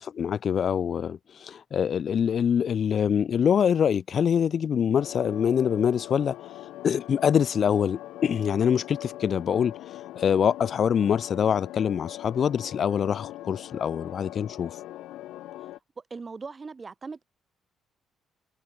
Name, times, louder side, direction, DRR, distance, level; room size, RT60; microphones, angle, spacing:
voice 1, 0.1-6.4 6.8-9.7 10.2-14.7, left 8 dB, 55° left, 0.3 m, -24 dB
sound 1, 4.9-15.8, left 15 dB, 90° left, 0.6 m, -41 dB
voice 2, 16.0-17.2, right 4 dB, 30° right, 4.3 m, -39 dB
cardioid pair, 90°, 0 cm